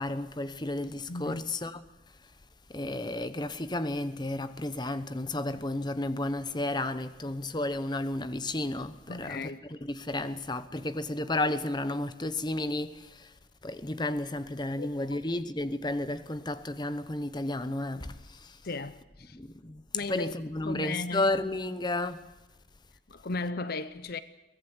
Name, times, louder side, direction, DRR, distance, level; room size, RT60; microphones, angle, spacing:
voice 1, 0.0-1.8 2.7-9.4 9.9-13.3 13.6-18.6 19.3-19.8 20.1-22.2, left 2 dB, 20° left, 0.9 m, -32 dB
voice 2, 1.1-1.4 9.1-9.7 14.8-14.9 18.6-19.4 19.9-20.3 20.6-21.3 23.1-24.2, left 3 dB, 50° left, 0.7 m, -36 dB
23.0 x 17.5 x 7.9 m
head